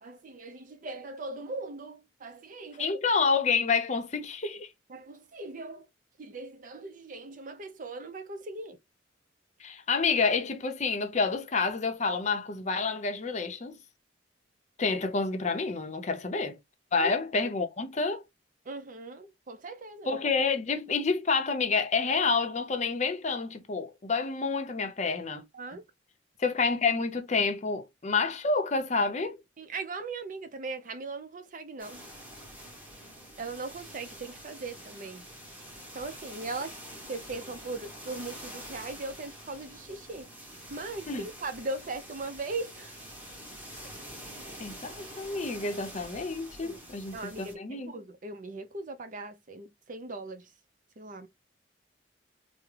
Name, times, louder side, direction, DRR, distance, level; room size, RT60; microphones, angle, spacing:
voice 1, 0.0-3.0 4.9-5.9 6.2-8.8 17.0-17.1 18.7-20.1 25.3-25.8 29.6-32.0 33.4-35.2 35.9-36.7 37.1-40.3 40.7-43.0 46.6-46.8 47.1-50.5 51.0-51.3, right 3 dB, 45° right, 0.5 m, -39 dB
voice 2, 2.8-4.7 9.6-13.8 14.8-16.6 16.9-18.2 20.1-25.4 26.4-29.4 41.1-41.2 44.6-47.9, left 4 dB, 40° left, 0.6 m, -28 dB
sound 1, 31.8-47.5, equal, 10° right, 1.0 m, -46 dB
3.5 x 2.0 x 3.1 m
head